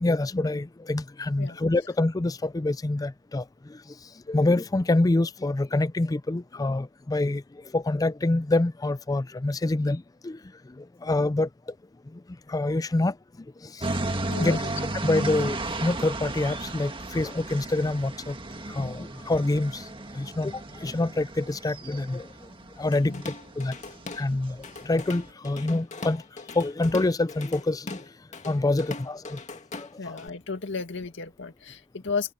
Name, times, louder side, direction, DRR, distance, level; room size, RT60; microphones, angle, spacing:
voice 1, 0.0-3.4 4.3-7.4 7.7-10.4 11.0-11.5 12.5-13.1 14.4-14.6 15.0-15.6 15.8-18.3 18.8-19.7 20.2-20.5 20.8-22.2 22.8-23.1 23.6-23.7 24.2-24.6 24.9-26.2 26.6-28.0 28.5-29.4, left 2 dB, 20° left, 0.4 m, -26 dB
sound 1, 13.8-25.3, right 2 dB, 25° right, 1.7 m, -34 dB
voice 2, 14.3-14.7 15.2-15.3 23.0-23.2 30.0-32.3, left 4 dB, 65° left, 2.2 m, -34 dB
Drum kit / Drum, 22.9-24.3 24.6-30.3, left 3 dB, 35° left, 2.1 m, -40 dB
head